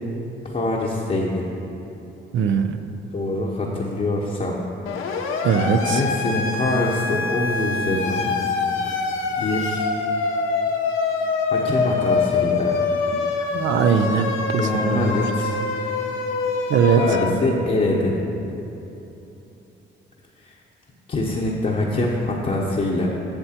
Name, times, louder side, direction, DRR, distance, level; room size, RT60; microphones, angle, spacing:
voice 1, 0.4-1.5 3.1-4.6 5.9-8.3 9.4-9.9 11.5-12.8 14.6-15.6 16.9-18.2 20.4-20.5 21.1-23.1, left 2 dB, 40° left, -4 dB, 0.9 m, -24 dB
voice 2, 2.3-2.8 5.4-6.0 13.1-13.2 13.5-15.1 16.7-17.0, right 7 dB, 70° right, 8 dB, 0.6 m, -20 dB
Siren, 4.9-17.2, left 4 dB, 85° left, 0.8 m, -25 dB
8.8 x 6.6 x 4.4 m, 3.0 s
cardioid pair, 90°, 20 cm